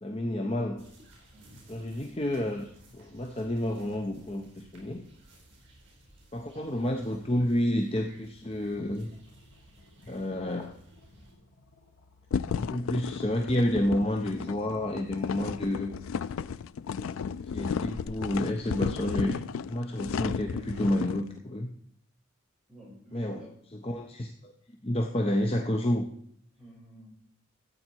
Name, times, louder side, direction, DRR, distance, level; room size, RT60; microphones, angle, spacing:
voice 1, 0.0-0.8 1.7-5.0 6.3-9.1 10.1-10.8 12.5-15.9 17.3-21.7 23.1-23.4 23.8-24.5 24.8-26.1, left 1 dB, 25° left, 3 dB, 0.7 m, -30 dB
sound 1, 0.8-11.3, right 1 dB, 55° right, 4.7 m, -57 dB
voice 2, 1.3-1.6 22.7-23.6 26.5-27.1, right 1 dB, ahead, -7 dB, 6.0 m, -51 dB
sound 2, 9.0-16.6, left 2 dB, 50° left, 1.4 m, -59 dB
sound 3, 12.3-21.2, left 6 dB, 65° left, 0.3 m, -33 dB
14.0 x 8.2 x 4.6 m, 0.67 s
head